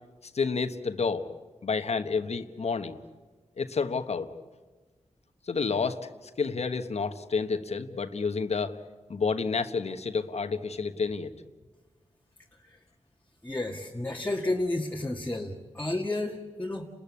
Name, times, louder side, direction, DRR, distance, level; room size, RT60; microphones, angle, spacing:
voice 1, 0.2-1.3 1.6-3.0 3.6-4.3 5.5-6.1 6.4-8.8 9.1-11.3, left 5 dB, 65° left, 9 dB, 1.2 m, -29 dB
voice 2, 13.4-16.9, left 2 dB, 15° left, -1 dB, 1.9 m, -31 dB
30.0 x 14.0 x 8.5 m, 1.3 s
cardioid pair, 60°, 12 cm